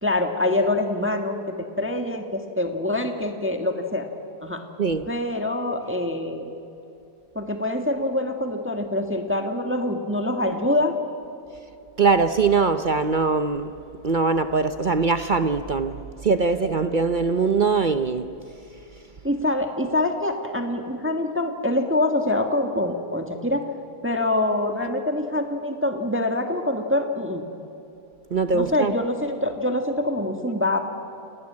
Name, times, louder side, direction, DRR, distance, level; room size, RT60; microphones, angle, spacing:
voice 1, 0.0-4.1 4.4-4.6 5.1-6.5 7.3-10.9 19.2-23.7 24.0-27.4 28.5-30.8, left 1 dB, 10° right, 1.5 m, -25 dB
voice 2, 12.0-13.7 14.0-18.3 28.3-28.9, right 4 dB, 50° right, 0.6 m, -22 dB
29.0 x 18.0 x 8.7 m
omnidirectional pair, 1.8 m